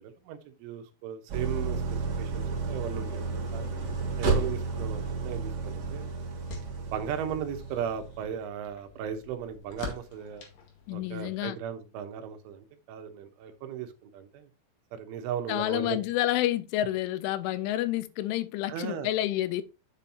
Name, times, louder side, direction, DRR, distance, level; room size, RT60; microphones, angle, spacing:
voice 1, 0.0-3.7 4.2-6.1 6.8-10.5 10.9-14.5 14.9-16.0 18.7-19.1, right 8 dB, 80° right, 3.4 m, -37 dB
Idling, 1.3-8.4, right 4 dB, 60° right, 1.5 m, -32 dB
sound 1, 5.4-11.5, left 5 dB, 55° left, 3.0 m, -47 dB
voice 2, 10.9-11.6 15.5-19.6, left 14 dB, 85° left, 3.0 m, -29 dB
8.8 x 7.8 x 2.8 m
omnidirectional pair, 5.7 m